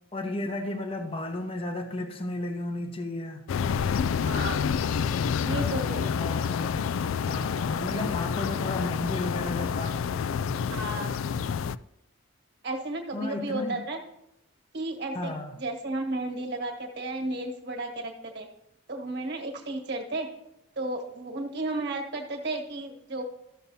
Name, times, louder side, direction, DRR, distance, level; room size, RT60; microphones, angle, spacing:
voice 1, 0.1-3.4 6.1-6.9 7.2-10.0 13.1-13.8 15.1-15.5, left 2 dB, 25° left, 0.8 m, -33 dB
sound 1, 3.5-11.8, left 6 dB, 75° left, 0.3 m, -28 dB
voice 2, 4.2-4.6 5.4-6.1 10.7-11.1 12.6-14.0 14.7-18.5 18.9-20.3 20.7-23.2, right 2 dB, 55° right, 1.6 m, -33 dB
13.5 x 6.9 x 2.8 m
head